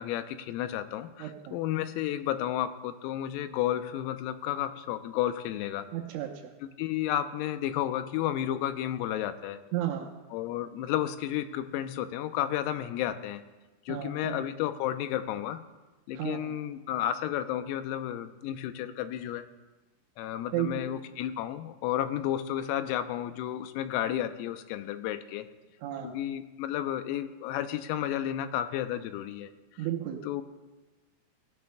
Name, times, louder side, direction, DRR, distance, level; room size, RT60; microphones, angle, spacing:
voice 1, 0.0-5.9 6.8-9.6 10.3-13.4 13.9-15.6 16.1-19.5 20.2-25.5 26.0-29.5 30.2-30.4, left 11 dB, 90° left, 10 dB, 3.4 m, -32 dB
voice 2, 1.2-1.6 5.9-6.5 9.7-10.1 13.9-14.4 16.1-16.5 20.5-20.8 25.8-26.2 29.8-30.3, right 12 dB, 80° right, 2 dB, 3.0 m, -33 dB
17.5 x 17.0 x 2.2 m, 1.2 s
omnidirectional pair, 6.0 m